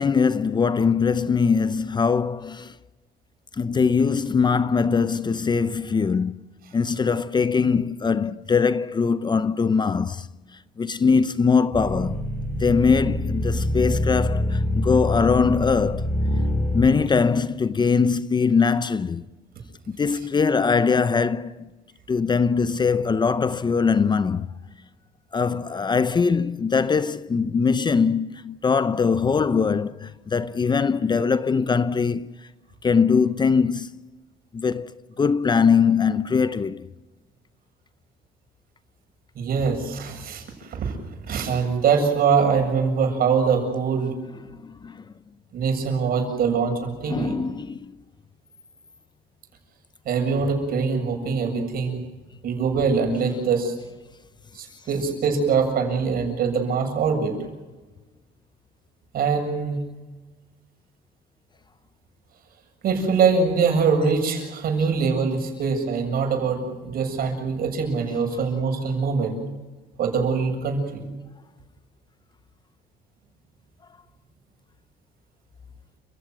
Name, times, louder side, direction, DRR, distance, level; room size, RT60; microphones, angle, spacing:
voice 1, 0.0-2.7 3.6-6.4 6.7-10.3 10.8-12.2 12.6-16.1 16.7-19.2 19.9-21.6 22.1-24.5 25.3-32.3 32.8-33.9 34.5-36.9 44.6-45.0 47.1-47.9, left 5 dB, 25° left, 0.7 m, -21 dB
sound 1, 11.7-16.9, left 1 dB, 10° left, 7.3 m, -25 dB
voice 2, 39.4-41.0 41.3-44.2 45.5-47.3 50.1-52.0 52.4-53.7 54.5-57.4 59.1-59.8 62.8-69.4 70.0-71.0, right 5 dB, 60° right, 7.5 m, -23 dB
30.0 x 16.0 x 9.3 m
cardioid pair, 110°, 17 cm